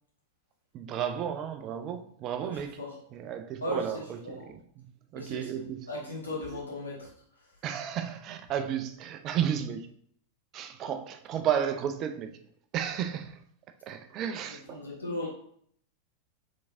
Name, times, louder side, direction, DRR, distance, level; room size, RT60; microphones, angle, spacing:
voice 1, 0.7-2.8 3.1-4.8 5.1-5.9 7.6-9.9 10.5-12.4 12.7-13.4 13.8-14.8, right 9 dB, 35° right, 0.4 m, -33 dB
voice 2, 3.6-4.5 5.1-7.1 14.7-15.3, left 1 dB, 75° left, 1.7 m, -36 dB
4.5 x 3.5 x 2.6 m
figure-of-eight pair, 90°, 0 cm